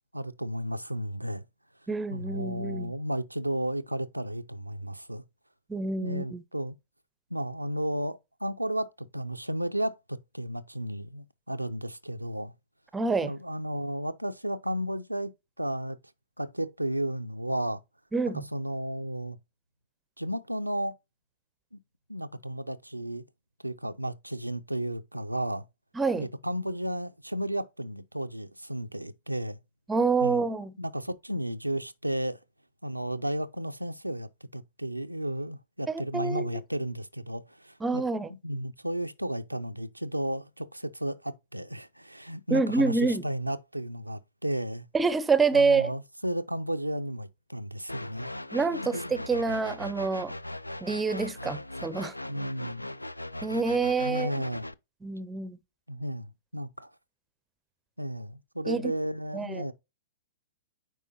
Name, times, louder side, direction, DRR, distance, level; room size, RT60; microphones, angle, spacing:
voice 1, 0.1-1.4 2.1-5.2 6.0-6.7 7.3-12.5 13.2-15.3 15.6-16.0 16.4-17.8 18.5-19.4 20.2-21.0 21.7-21.8 22.1-23.2 23.6-25.6 26.2-29.6 30.2-30.4 30.8-32.4 32.8-38.0 38.4-44.9 45.5-48.3 48.9-49.1 52.3-52.9 54.0-54.7 55.9-56.9 58.0-59.7, right 1 dB, 90° right, 0.5 m, -33 dB
voice 2, 1.9-2.9 5.7-6.4 12.9-13.3 18.1-18.4 25.9-26.3 29.9-30.7 35.9-36.5 37.8-38.3 42.5-43.2 44.9-45.9 48.5-50.3 50.8-52.1 53.4-54.3 55.0-55.6 58.7-58.9 59.3-59.6, right 4 dB, 10° right, 0.6 m, -27 dB
sound 1, 47.9-54.7, left 1 dB, 85° left, 0.3 m, -39 dB
9.0 x 4.9 x 2.6 m
figure-of-eight pair, 105°, 0 cm